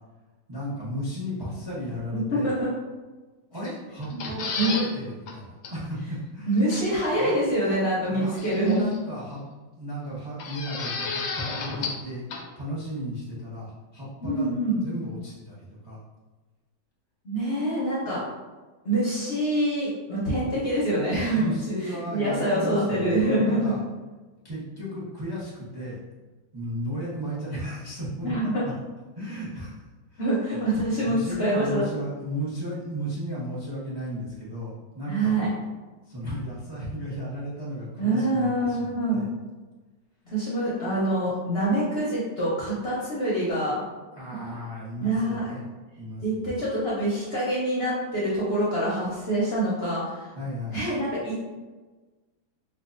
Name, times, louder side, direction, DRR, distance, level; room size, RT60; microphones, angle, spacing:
voice 1, 0.5-2.5 3.5-6.5 7.2-7.4 7.7-8.4 8.6-9.4 9.7-12.2 12.6-14.6 14.8-16.0 21.3-23.8 24.4-26.0 26.5-28.7 29.2-29.8 30.1-30.2 31.0-35.4 36.0-39.2 44.1-45.6 46.0-46.5 50.4-50.8, equal, 30° right, -8 dB, 0.4 m, -34 dB
voice 2, 2.1-2.7 4.6-4.8 6.5-8.9 14.2-14.8 17.2-18.2 18.8-21.5 21.8-23.7 28.2-28.6 30.2-31.9 35.1-35.5 38.0-39.2 40.3-43.8 45.0-45.5 46.2-50.3 50.7-51.4, right 1 dB, 50° left, -7 dB, 0.8 m, -25 dB
sound 1, 4.0-4.9 5.3-5.4 5.6-5.7 6.7-7.1 8.4-9.0 10.4-12.0 12.3-12.4, left 5 dB, 80° left, 1.2 m, -32 dB
4.6 x 2.2 x 2.5 m, 1.2 s
omnidirectional pair, 1.9 m